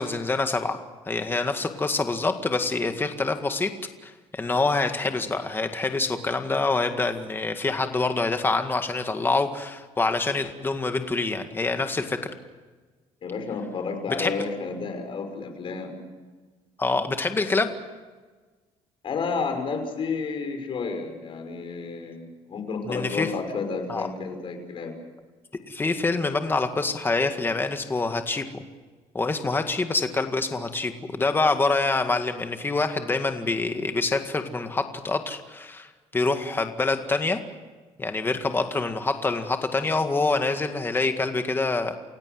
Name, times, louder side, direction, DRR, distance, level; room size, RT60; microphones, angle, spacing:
voice 1, 0.0-3.7 4.0-12.3 14.2-14.4 16.8-17.7 22.9-23.3 23.9-24.1 25.7-28.6 29.1-37.4 38.0-42.0, left 3 dB, 20° left, 7 dB, 1.9 m, -26 dB
voice 2, 13.2-15.9 19.0-24.9, left 4 dB, 45° left, 6 dB, 5.5 m, -31 dB
29.0 x 16.5 x 7.9 m, 1.4 s
cardioid pair, 125°, 12 cm